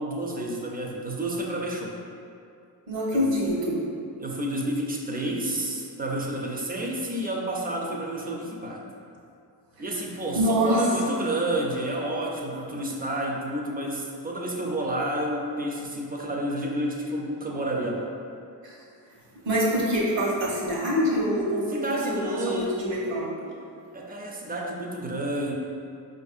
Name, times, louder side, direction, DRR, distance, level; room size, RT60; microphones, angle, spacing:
voice 1, 0.0-2.0 3.1-3.3 4.2-8.8 9.8-18.1 21.7-22.8 23.9-25.5, right 1 dB, 20° right, -1 dB, 0.5 m, -30 dB
voice 2, 2.9-3.8 9.9-10.0 10.3-10.8 18.6-18.8 19.4-21.6 22.1-23.3, equal, 75° right, -5 dB, 1.2 m, -25 dB
4.6 x 2.6 x 2.4 m, 2.5 s
cardioid pair, 75°, 44 cm